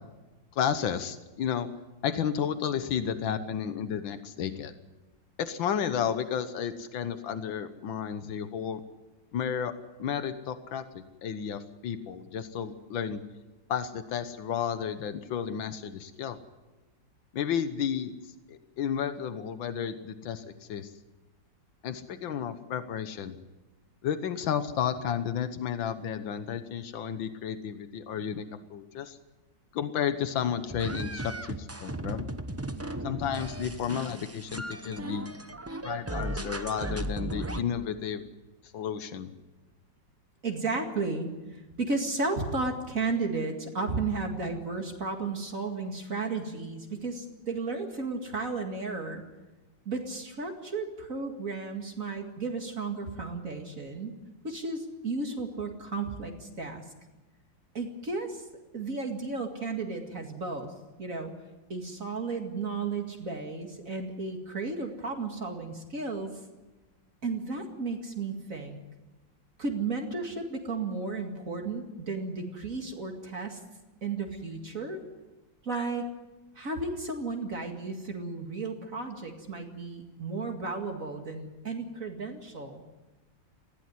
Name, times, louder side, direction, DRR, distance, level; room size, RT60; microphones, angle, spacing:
voice 1, 0.5-1.7 2.0-4.7 5.4-8.8 9.3-9.7 10.0-13.2 13.7-16.4 17.3-18.1 18.5-20.4 20.7-20.9 21.8-23.4 24.0-29.2 29.7-32.3 33.0-35.3 35.8-38.2 38.6-39.3, left 8 dB, 90° left, 10 dB, 1.8 m, -32 dB
sound 1, 30.7-37.6, right 2 dB, 20° right, 0.4 m, -36 dB
voice 2, 40.4-49.2 49.9-54.1 54.4-56.8 57.7-58.4 58.7-60.7 61.0-61.3 61.7-66.3 67.2-68.8 69.6-73.6 74.0-75.0 75.6-76.1 76.6-82.8, right 3 dB, 45° right, 3 dB, 2.5 m, -33 dB
19.5 x 15.5 x 9.6 m, 1.1 s
omnidirectional pair, 2.0 m